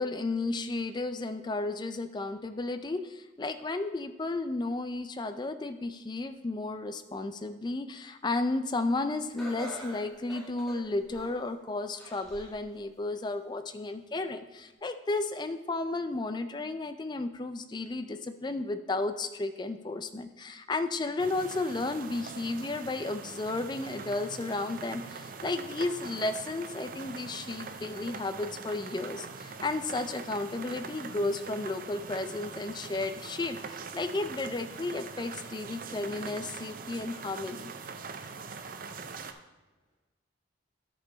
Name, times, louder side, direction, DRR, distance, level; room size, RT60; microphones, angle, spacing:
voice 1, 0.0-37.7, left 2 dB, 20° left, 9 dB, 0.3 m, -33 dB
Laughter, 9.4-11.5 12.0-12.6 13.1-13.2 14.1-14.2, equal, ahead, 1.8 m, -45 dB
sound 1, 21.2-39.3, right 5 dB, 45° right, 0.5 m, -43 dB
voice 2, 39.0-40.0, equal, 40° left, -6 dB, 2.2 m, -77 dB
10.0 x 5.5 x 3.9 m, 1.1 s
head